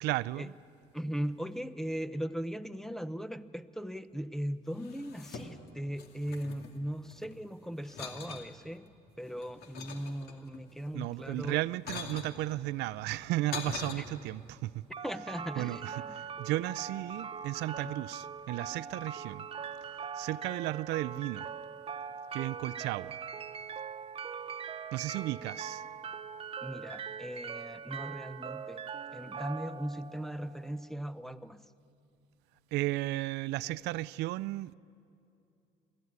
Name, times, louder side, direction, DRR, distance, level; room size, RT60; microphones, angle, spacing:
voice 1, 0.0-0.5 10.9-14.9 15.6-19.5 20.1-21.5 22.3-23.2 24.9-25.8 32.7-34.7, right 17 dB, 85° right, 0.4 m, -34 dB
voice 2, 0.9-8.9 9.2-11.6 14.0-14.1 15.0-16.2 17.8-17.9 26.6-28.9 29.1-31.7, equal, ahead, 0.7 m, -38 dB
sound 1, 4.7-5.7 6.0-7.3 7.8-8.5 9.1-10.6 11.4-12.3 13.1-13.9, left 5 dB, 70° left, 2.4 m, -42 dB
sound 2, 14.9-30.9, right 6 dB, 35° right, 0.6 m, -42 dB
23.0 x 15.0 x 9.5 m
cardioid pair, 110°, 17 cm